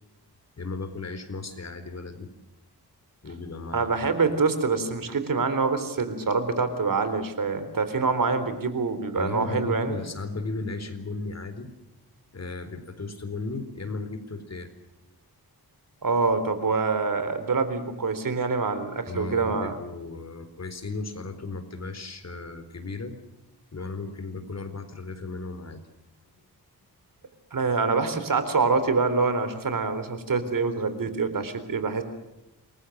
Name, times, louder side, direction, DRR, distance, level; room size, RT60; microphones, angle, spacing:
voice 1, 0.6-2.3 3.2-4.1 9.1-11.7 12.3-14.7 19.1-23.1 23.7-25.8, left 3 dB, 45° left, 9 dB, 4.2 m, -35 dB
voice 2, 3.7-10.0 16.0-19.7 27.5-32.0, right 4 dB, 60° right, 11 dB, 3.8 m, -25 dB
28.0 x 22.5 x 6.5 m, 0.96 s
wide cardioid pair, 115°, 38 cm